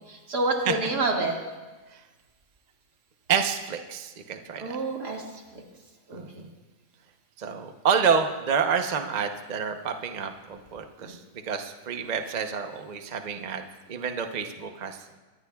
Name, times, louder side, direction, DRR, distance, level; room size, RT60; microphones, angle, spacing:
voice 1, 0.0-1.3 4.6-5.2 6.1-6.2 11.0-11.2, right 2 dB, 90° right, 0 dB, 2.6 m, -28 dB
voice 2, 3.3-4.8 6.1-6.5 7.4-11.2 11.5-15.0, right 6 dB, 35° right, 5 dB, 0.8 m, -28 dB
23.5 x 19.0 x 2.4 m, 1.3 s
omnidirectional pair, 1.7 m